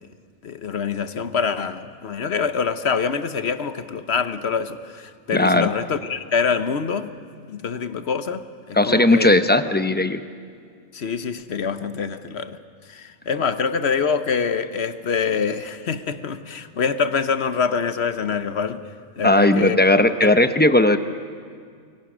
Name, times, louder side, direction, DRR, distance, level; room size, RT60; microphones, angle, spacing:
voice 1, 0.4-7.1 7.5-8.4 8.7-9.3 10.9-12.6 12.9-18.8 19.2-19.8 20.2-20.4, left 6 dB, 60° left, 11 dB, 1.1 m, -25 dB
voice 2, 5.3-5.7 8.7-10.2 19.2-21.0, left 1 dB, 10° left, 9 dB, 0.6 m, -17 dB
29.0 x 22.5 x 6.1 m, 2.1 s
omnidirectional pair, 1.3 m